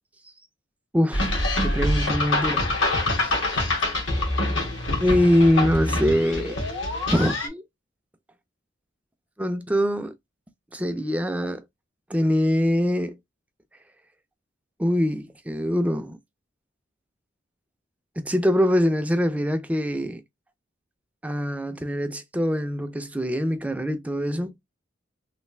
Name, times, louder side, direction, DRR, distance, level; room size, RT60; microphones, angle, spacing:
voice 1, 0.9-2.7 3.2-3.6 5.0-6.6 7.1-7.6 9.4-10.1 10.7-11.6 12.1-13.2 14.8-16.2 18.2-20.2 21.2-24.6, equal, 5° right, 0.4 m, -23 dB
Optigan Drums MG Reel, 1.1-7.5, left 2 dB, 85° left, 1.5 m, -25 dB
3.3 x 2.5 x 3.1 m
head